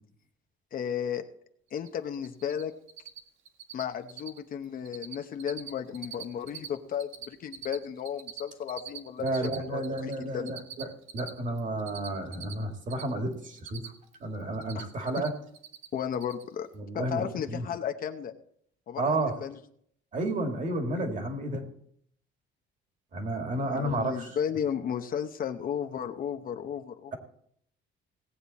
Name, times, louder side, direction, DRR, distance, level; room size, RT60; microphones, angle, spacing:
voice 1, 0.7-1.2 1.7-2.7 3.7-9.3 9.6-10.5 14.7-14.9 15.9-16.7 16.9-18.3 18.9-19.6 23.7-27.1, left 8 dB, 45° left, 7 dB, 0.8 m, -34 dB
Cricket, 1.8-2.6 2.9-3.2 3.4-3.8 4.1-4.4 4.6-5.1 5.4-6.7 6.9-10.1 10.5-13.0 13.3-14.1 14.4-15.3 15.5-15.9 16.1-16.4, right 10 dB, 75° right, 1.5 m, -42 dB
voice 2, 9.2-10.9 11.1-13.9 14.2-15.3 16.7-17.7 19.0-19.3 20.1-21.6 23.1-24.4, right 1 dB, 40° right, 4 dB, 2.2 m, -31 dB
18.0 x 8.7 x 4.2 m, 0.66 s
cardioid pair, 165°, 20 cm